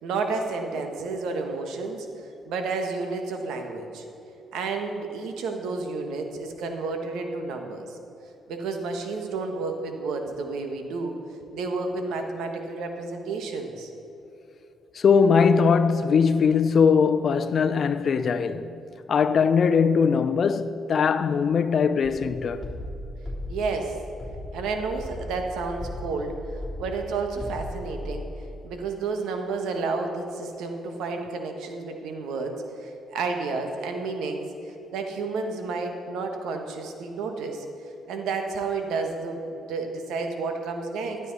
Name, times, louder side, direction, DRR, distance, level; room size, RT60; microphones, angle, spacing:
voice 1, 0.0-4.0 4.5-8.0 8.5-11.1 11.5-13.9 23.5-24.0 24.5-26.3 26.8-28.3 28.6-41.2, right 4 dB, 85° right, 1.3 m, -31 dB
voice 2, 14.9-18.8 19.1-22.6, left 6 dB, 55° left, 0.5 m, -21 dB
sound 1, 22.0-28.0, left 1 dB, 15° left, 3.2 m, -37 dB
12.5 x 11.5 x 4.1 m
cardioid pair, 90°, 0 cm